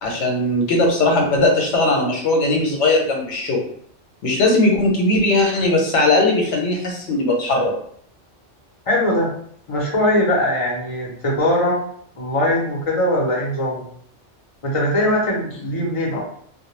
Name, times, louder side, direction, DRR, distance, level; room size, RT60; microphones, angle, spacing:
voice 1, 0.0-3.6 4.2-7.7, left 2 dB, 75° left, 0 dB, 1.0 m, -18 dB
voice 2, 8.9-9.3 9.7-11.8 12.2-13.8 14.6-16.2, left 1 dB, 35° left, -3 dB, 0.7 m, -20 dB
2.2 x 2.1 x 3.1 m, 0.62 s
omnidirectional pair, 1.2 m